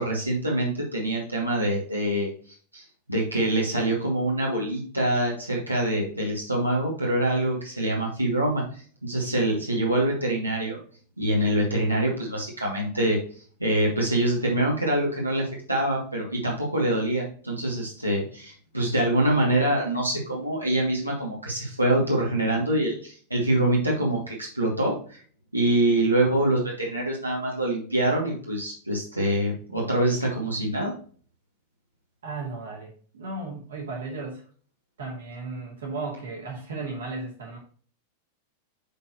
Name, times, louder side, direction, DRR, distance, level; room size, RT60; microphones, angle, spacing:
voice 1, 0.0-2.3 2.7-2.8 3.1-10.8 11.2-13.2 13.6-25.2 25.5-30.9, right 1 dB, 85° right, -4 dB, 2.3 m, -25 dB
voice 2, 32.2-34.4 35.0-37.6, right 3 dB, 65° right, 0 dB, 2.5 m, -35 dB
9.9 x 4.3 x 3.0 m, 0.43 s
figure-of-eight pair, 90°, 0 cm